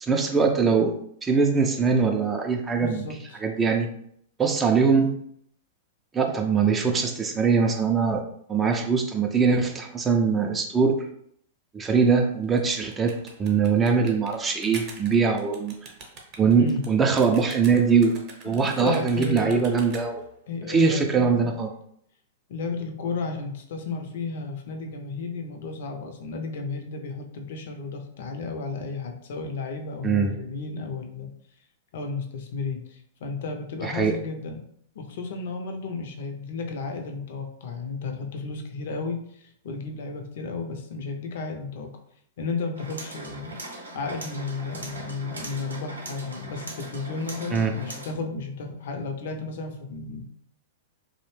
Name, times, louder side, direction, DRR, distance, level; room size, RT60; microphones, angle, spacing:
voice 1, 0.0-0.9 1.2-3.1 3.4-3.9 4.4-5.1 6.1-8.2 8.5-10.9 11.7-13.1 13.4-15.7 16.4-18.1 18.4-20.2 20.7-21.7 30.0-30.3 33.8-34.2 47.5-47.7, right 5 dB, 20° right, 3 dB, 0.3 m, -22 dB
voice 2, 2.8-3.4 16.6-16.8 18.4-19.7 20.5-21.5 22.5-31.3 31.9-34.6 34.9-41.9 42.4-43.6 43.9-50.3, left 4 dB, 65° left, 4 dB, 0.5 m, -33 dB
sound 1, 12.4-20.3, right 4 dB, 40° right, 0.7 m, -44 dB
sound 2, 42.7-48.1, right 2 dB, 90° right, 0.6 m, -40 dB
2.5 x 2.0 x 3.1 m, 0.69 s
hypercardioid pair, 110°, 0 cm